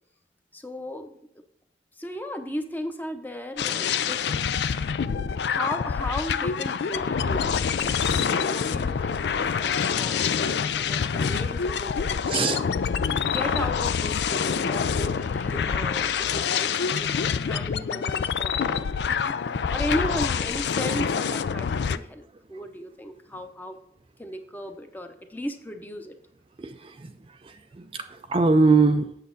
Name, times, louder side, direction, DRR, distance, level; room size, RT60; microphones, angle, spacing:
voice 1, 0.5-1.1 2.0-4.2 5.2-12.6 13.3-18.9 19.7-23.8 24.2-26.1, left 1 dB, 10° left, 6 dB, 0.7 m, -35 dB
sound 1, 3.6-22.0, left 6 dB, 70° left, 0.4 m, -26 dB
voice 2, 12.3-12.6 19.0-19.7 22.5-22.6 26.6-29.2, right 3 dB, 30° right, 7 dB, 0.4 m, -24 dB
8.3 x 6.7 x 4.0 m, 0.74 s
head